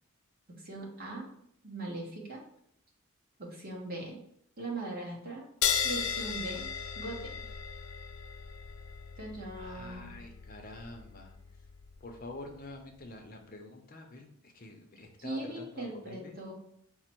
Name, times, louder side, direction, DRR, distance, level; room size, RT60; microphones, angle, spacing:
voice 1, 0.6-1.3 1.6-2.4 3.4-4.2 4.6-5.5 5.8-6.7 7.0-7.3 9.2-10.1 15.2-16.5, right 2 dB, 45° right, -2 dB, 1.1 m, -40 dB
sound 1, 5.6-12.6, left 7 dB, 90° left, 0.4 m, -36 dB
voice 2, 9.6-11.4 12.0-16.3, left 2 dB, 40° left, 3 dB, 0.5 m, -47 dB
5.0 x 2.0 x 4.4 m, 0.71 s
head